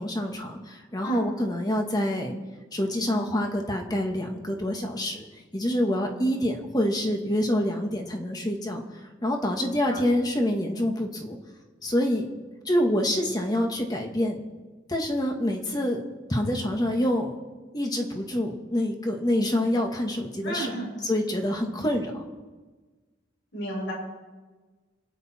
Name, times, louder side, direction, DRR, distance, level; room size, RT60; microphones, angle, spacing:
voice 1, 0.0-2.3 2.7-5.2 5.5-8.8 9.2-11.4 11.8-12.3 12.7-14.4 14.9-16.0 16.3-17.3 17.7-20.7 21.0-22.2, left 1 dB, 20° left, 2 dB, 1.9 m, -26 dB
voice 2, 20.4-20.9 23.5-23.9, right 1 dB, 70° left, -2 dB, 6.9 m, -32 dB
27.0 x 9.8 x 4.6 m, 1.3 s
head